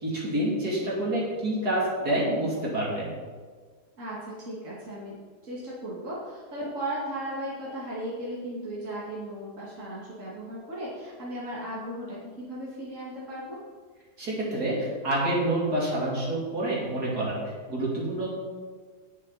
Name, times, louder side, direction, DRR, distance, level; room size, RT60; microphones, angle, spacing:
voice 1, 0.0-3.1 14.2-17.4 17.7-18.3, right 1 dB, 65° right, -5 dB, 3.7 m, -27 dB
voice 2, 4.0-5.2 5.4-13.6, right 1 dB, 50° right, -7 dB, 2.7 m, -36 dB
18.0 x 7.0 x 4.3 m, 1.5 s
omnidirectional pair, 1.8 m